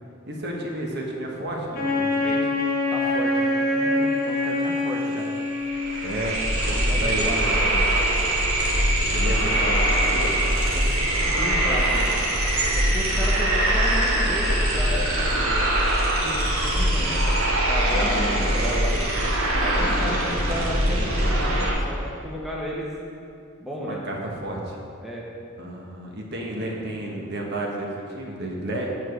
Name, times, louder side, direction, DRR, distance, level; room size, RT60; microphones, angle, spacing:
voice 1, 0.3-2.5 6.0-7.8 9.1-10.4 17.9-18.5 19.8-20.1 23.8-24.8 25.6-28.9, right 1 dB, 50° right, -1 dB, 1.2 m, -31 dB
Wind instrument woodwind instrument, 1.7-6.1, left 2 dB, 45° left, 1.3 m, -24 dB
voice 2, 2.9-5.3 6.8-7.4 10.7-12.1 12.7-15.7 16.2-17.3 17.7-19.0 19.6-22.9 23.6-24.0 25.0-25.3, equal, ahead, -4 dB, 1.1 m, -33 dB
sound 1, 4.7-4.8 5.0-21.7, right 1 dB, 85° right, 1.6 m, -22 dB
8.5 x 4.9 x 6.8 m, 2.4 s
head